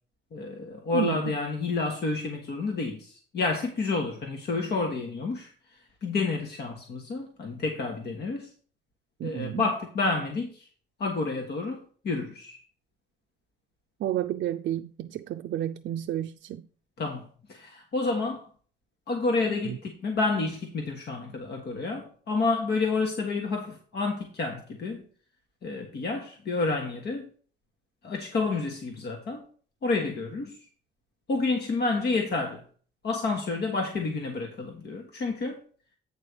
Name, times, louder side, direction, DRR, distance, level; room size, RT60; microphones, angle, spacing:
voice 1, 0.3-5.5 6.0-8.5 9.2-10.7 11.0-12.6 17.0-18.5 19.1-25.0 25.6-27.3 28.0-29.4 29.8-30.6 31.3-32.6 33.0-35.6, left 3 dB, 55° left, 1.4 m, -29 dB
voice 2, 0.9-1.3 9.2-9.6 14.0-16.6 19.7-19.8, right 11 dB, 65° right, 0.4 m, -31 dB
8.7 x 3.3 x 6.7 m
cardioid pair, 90°, 20 cm